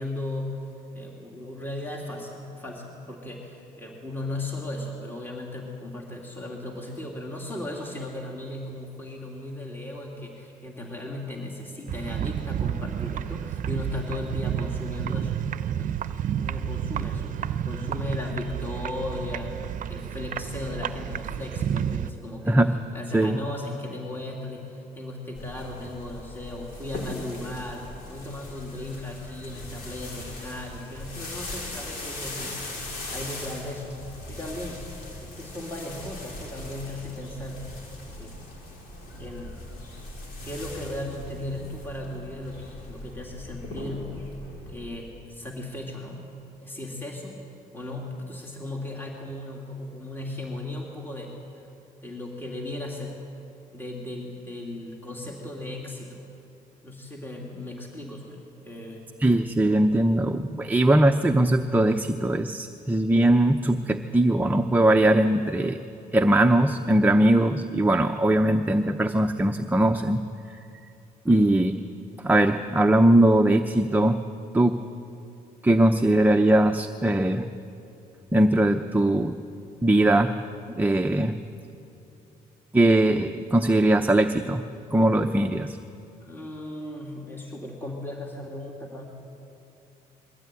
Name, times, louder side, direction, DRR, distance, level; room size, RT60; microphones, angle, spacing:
voice 1, 0.0-15.4 15.7-16.0 16.4-32.8 33.1-34.9 35.2-37.7 38.2-38.3 39.1-39.6 40.4-44.2 44.7-46.2 46.6-47.4 47.7-51.7 52.0-53.2 53.7-56.2 56.8-59.1 71.3-71.5 86.2-89.1, left 1 dB, 15° left, -1 dB, 2.9 m, -36 dB
sound 1, 11.9-22.1, right 9 dB, 55° right, 0.6 m, -30 dB
sound 2, 25.4-44.7, left 1 dB, 85° left, 5.2 m, -39 dB
voice 2, 59.2-65.8 66.1-70.2 71.3-71.7 72.2-74.2 74.5-74.8 75.6-77.5 78.3-79.4 79.8-80.4 80.7-81.4 82.7-84.7 84.9-85.8, right 1 dB, 10° right, 6 dB, 0.7 m, -20 dB
22.0 x 15.0 x 9.2 m, 2.8 s
cardioid pair, 95°, 16 cm